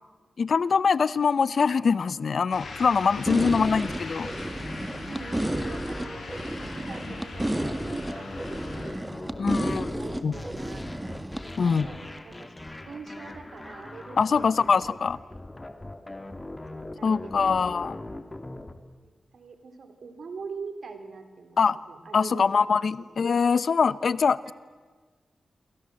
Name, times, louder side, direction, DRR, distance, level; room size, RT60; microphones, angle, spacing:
voice 1, 0.4-4.3 9.4-9.9 10.2-10.3 11.6-11.9 14.2-15.2 17.0-18.0 21.6-21.8 22.1-24.5, left 5 dB, 70° left, 19 dB, 0.7 m, -23 dB
sound 1, 2.5-8.9, left 2 dB, 85° left, 7.8 m, -41 dB
voice 2, 3.2-3.7 5.1-9.0 9.6-10.8 11.4-15.0 15.2-15.4 16.7-17.6 19.0-21.6 21.9-22.7 23.0-23.1 24.4-24.5, right 4 dB, 75° right, 8 dB, 3.5 m, -43 dB
sound 2, 3.3-18.7, left 1 dB, 25° left, 2.4 m, -41 dB
sound 3, 3.3-11.4, right 1 dB, 15° right, 1.9 m, -32 dB
28.0 x 23.5 x 7.6 m, 1.4 s
cardioid pair, 65°, 0 cm